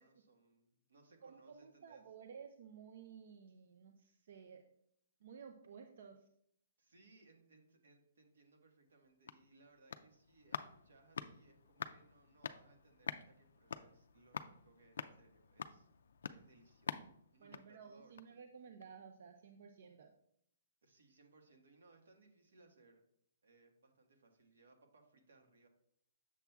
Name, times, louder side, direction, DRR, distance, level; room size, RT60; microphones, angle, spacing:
voice 1, 0.0-2.0 6.8-15.9 16.3-18.2 20.8-23.0 23.4-25.7, right 3 dB, 75° right, 4 dB, 1.3 m, -67 dB
voice 2, 1.2-4.6 5.2-6.3 17.4-20.1, right 6 dB, 45° right, 6 dB, 0.4 m, -55 dB
sound 1, 8.9-18.5 18.8-18.9, left 6 dB, 65° left, 0.3 m, -48 dB
7.1 x 7.0 x 2.3 m, 0.72 s
hypercardioid pair, 180°, 0 cm